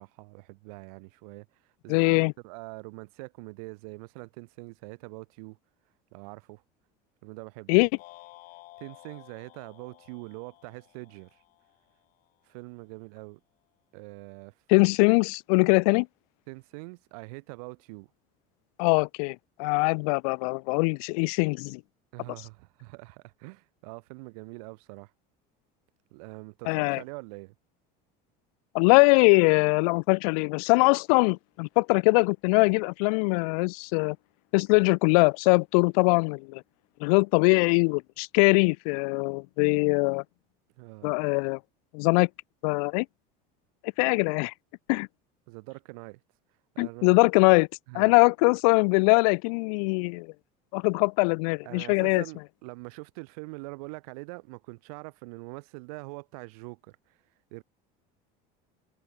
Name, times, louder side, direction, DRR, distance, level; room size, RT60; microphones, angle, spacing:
voice 1, 0.0-1.5 1.8-5.6 6.1-6.6 7.2-7.9 8.8-11.4 12.4-13.4 13.9-14.5 16.5-18.1 22.1-25.1 26.1-27.5 40.8-41.1 45.5-46.2 46.7-47.2 47.9-48.2 51.6-57.2 57.5-57.6, right 28 dB, 85° right, 3.0 m, -43 dB
voice 2, 1.9-2.3 7.7-7.9 14.7-16.1 18.8-21.8 26.7-27.0 28.7-34.2 34.5-36.6 37.0-40.2 41.0-41.6 41.9-42.3 42.6-43.1 43.8-44.5 44.9-45.1 46.8-47.7 47.9-50.3 50.7-52.2, left 33 dB, 85° left, 0.4 m, -22 dB
sound 1, 8.0-12.3, left 19 dB, 50° left, 2.3 m, -53 dB
cardioid pair, 170°, 18 cm